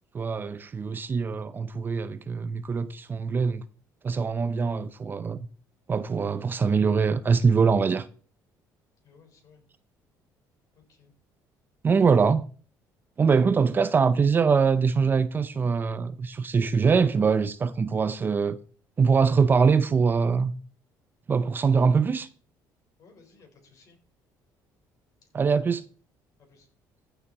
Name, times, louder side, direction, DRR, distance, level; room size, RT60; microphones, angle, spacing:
voice 1, 0.1-3.7 4.0-5.5 5.9-8.1 11.8-12.5 13.2-18.6 19.0-20.5 21.3-22.3 25.3-25.8, right 5 dB, 30° right, 0.6 m, -23 dB
voice 2, 9.0-9.6 10.7-11.1 23.0-24.0 26.4-26.7, left 4 dB, 50° left, 4.6 m, -57 dB
14.5 x 6.9 x 4.1 m
cardioid pair, 125°, 7 cm